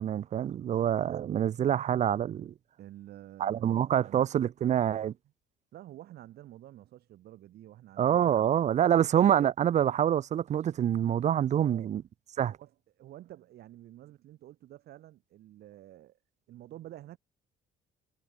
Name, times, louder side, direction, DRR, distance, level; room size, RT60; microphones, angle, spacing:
voice 1, 0.0-2.5 3.4-5.1 8.0-12.0 12.4-12.5, right 10 dB, 45° right, 0.6 m, -26 dB
voice 2, 2.8-4.3 5.7-8.4 8.6-9.1 11.5-11.9 12.5-16.2 16.5-17.2, right 13 dB, 70° right, 4.8 m, -50 dB
cardioid pair, 110°, 17 cm